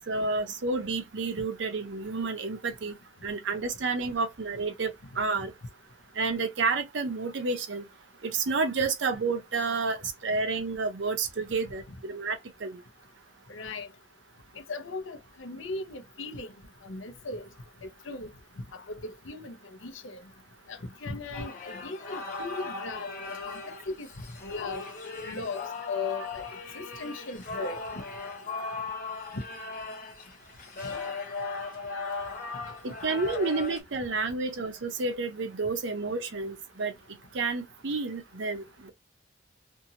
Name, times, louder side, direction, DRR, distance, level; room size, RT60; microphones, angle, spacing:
voice 1, 0.0-3.0 3.2-4.9 5.2-5.5 6.2-7.9 8.2-12.8 32.8-36.9 37.3-38.9, right 4 dB, 65° right, 0.6 m, -30 dB
voice 2, 13.5-13.9 14.7-16.5 16.8-17.4 17.8-18.3 18.7-20.2 20.7-23.1 23.5-23.6 23.9-24.1 24.4-24.8 25.2-26.4 26.7-28.0 29.3-29.4, left 3 dB, 75° left, 0.7 m, -37 dB
sound 1, 21.3-33.8, left 4 dB, 45° left, 1.0 m, -38 dB
2.7 x 2.6 x 2.7 m
head